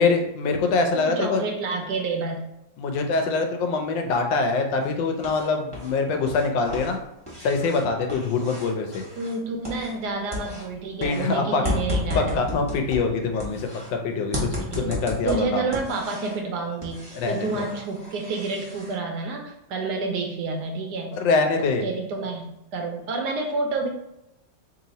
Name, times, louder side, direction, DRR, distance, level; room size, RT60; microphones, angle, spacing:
voice 1, 0.0-1.4 2.8-7.0 7.4-9.0 11.0-11.6 12.1-14.5 14.7-15.6 17.1-17.6 21.1-21.8, left 4 dB, 80° left, 4 dB, 1.3 m, -24 dB
voice 2, 0.9-2.4 9.2-12.4 14.6-15.0 15.2-21.2 21.8-23.9, right 3 dB, 70° right, 2 dB, 1.1 m, -29 dB
sound 1, 4.8-5.9 6.2-10.1 10.3-13.9 14.3-16.4 16.8-18.9, left 1 dB, 20° right, 0.8 m, -33 dB
3.1 x 2.8 x 4.0 m, 0.88 s
omnidirectional pair, 2.1 m